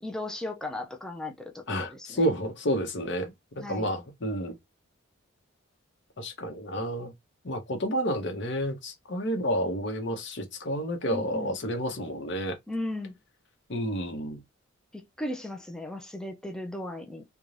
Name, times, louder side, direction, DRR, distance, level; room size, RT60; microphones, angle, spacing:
voice 1, 0.0-2.3 3.6-3.9 11.0-11.6 12.7-13.1 14.9-17.2, left 1 dB, 5° left, 0.4 m, -36 dB
voice 2, 1.7-4.5 6.2-7.1 7.4-12.6 13.7-14.4, equal, 55° left, 0.8 m, -30 dB
2.5 x 2.2 x 3.1 m
head